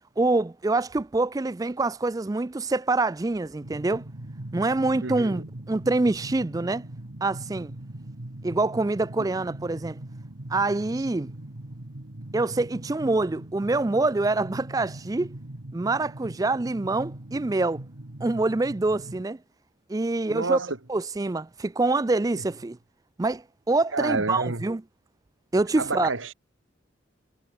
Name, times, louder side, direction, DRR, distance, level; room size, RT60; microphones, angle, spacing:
voice 1, 0.2-4.0 4.5-6.8 7.2-7.7 8.4-10.0 10.5-11.3 12.3-15.3 15.7-17.8 18.2-19.4 19.9-20.6 20.9-22.8 23.2-24.8 25.5-26.1, right 2 dB, 20° right, 0.4 m, -25 dB
sound 1, 3.6-19.2, right 1 dB, 65° right, 1.7 m, -41 dB
voice 2, 5.0-5.5 9.2-9.3 20.3-20.8 22.3-22.4 23.9-24.6 25.8-26.3, right 3 dB, 85° right, 2.3 m, -29 dB
head